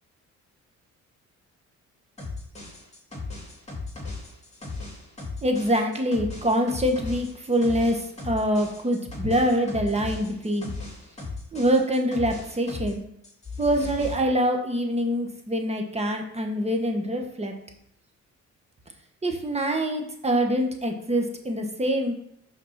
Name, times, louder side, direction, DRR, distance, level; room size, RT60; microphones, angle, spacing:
sound 1, 2.2-13.0 13.2-14.2, left 3 dB, 20° left, 2.8 m, -37 dB
voice 1, 5.4-10.7 11.5-13.0 13.6-17.5 19.2-22.1, equal, 20° right, 3 dB, 1.4 m, -25 dB
5.9 x 4.3 x 5.9 m, 0.76 s
cardioid pair, 90°, 30 cm